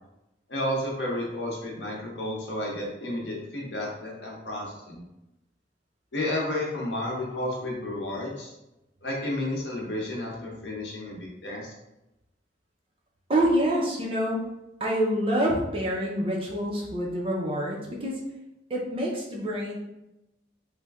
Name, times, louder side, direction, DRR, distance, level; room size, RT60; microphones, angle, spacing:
voice 1, 0.5-5.0 6.1-8.5 9.0-11.7, left 1 dB, 70° left, -3 dB, 0.9 m, -32 dB
voice 2, 13.3-14.4 14.8-18.1 18.7-19.8, right 1 dB, 30° right, -3 dB, 0.6 m, -26 dB
3.2 x 2.2 x 3.4 m, 0.92 s
head